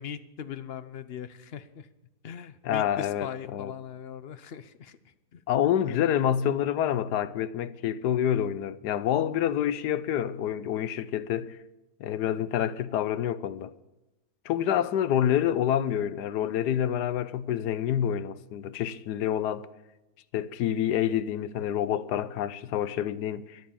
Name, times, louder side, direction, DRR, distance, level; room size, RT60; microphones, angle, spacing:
voice 1, 0.0-1.9 2.2-5.0 5.3-5.4 5.8-6.0, left 8 dB, 50° left, 0.8 m, -40 dB
voice 2, 2.6-3.7 5.5-11.6 12.0-13.7 14.4-19.7 20.3-23.6, left 10 dB, 85° left, 1.3 m, -27 dB
13.5 x 10.5 x 7.2 m
omnidirectional pair, 1.7 m